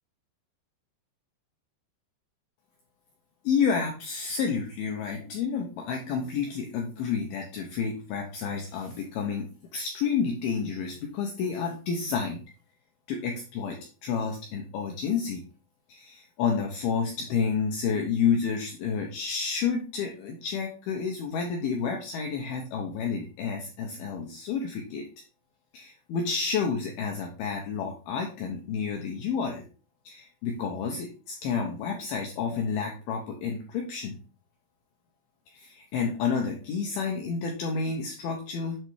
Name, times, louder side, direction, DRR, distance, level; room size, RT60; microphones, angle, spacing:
voice 1, 3.4-12.4 13.1-13.8 14.0-15.4 15.9-25.0 25.7-29.6 30.1-34.2 35.5-38.8, left 6 dB, 80° left, 1 dB, 2.3 m, -30 dB
7.8 x 3.2 x 4.6 m, 0.37 s
omnidirectional pair, 5.3 m